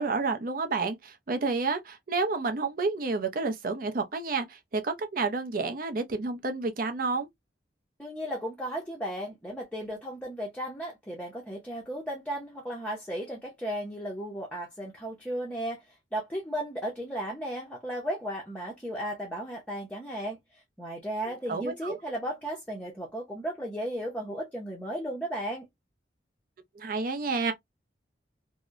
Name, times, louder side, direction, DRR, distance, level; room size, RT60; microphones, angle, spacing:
voice 1, 0.0-7.3 21.2-22.0 26.8-27.5, right 4 dB, 50° right, 0.5 m, -30 dB
voice 2, 8.0-15.8 16.1-25.7, right 1 dB, 10° left, 0.6 m, -35 dB
2.7 x 2.1 x 2.3 m
head